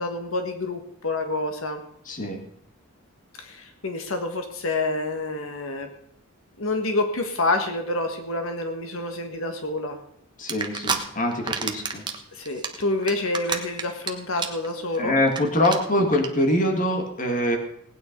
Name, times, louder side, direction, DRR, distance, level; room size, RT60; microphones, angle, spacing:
voice 1, 0.0-1.8 3.4-5.9 6.6-10.0 12.3-15.2, left 2 dB, 75° left, 5 dB, 1.5 m, -28 dB
voice 2, 2.1-2.4 10.4-12.0 15.0-17.6, left 1 dB, 40° left, 4 dB, 2.0 m, -24 dB
sound 1, 10.5-11.0 11.3-12.2 12.5-14.1 14.4-14.7 14.9-15.0 15.3-15.4 15.6-15.8 16.1-16.3, right 5 dB, 20° right, 1.2 m, -27 dB
18.0 x 9.3 x 5.3 m, 0.71 s
head